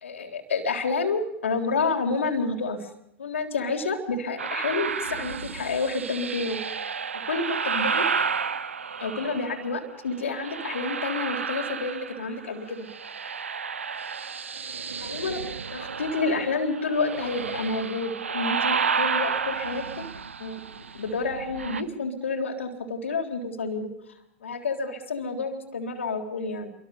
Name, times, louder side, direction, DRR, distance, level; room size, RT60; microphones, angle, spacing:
voice 1, 0.0-2.9 3.2-6.6 7.3-8.1 9.0-12.9 15.0-15.4 15.7-20.1 20.4-20.6 20.9-23.9 24.4-26.7, left 3 dB, 75° left, 2 dB, 3.8 m, -29 dB
sound 1, 4.4-9.7 10.2-12.5 12.7-21.8, right 5 dB, 80° right, 1.1 m, -31 dB
28.5 x 24.0 x 6.9 m, 0.83 s
figure-of-eight pair, 100°, 7 cm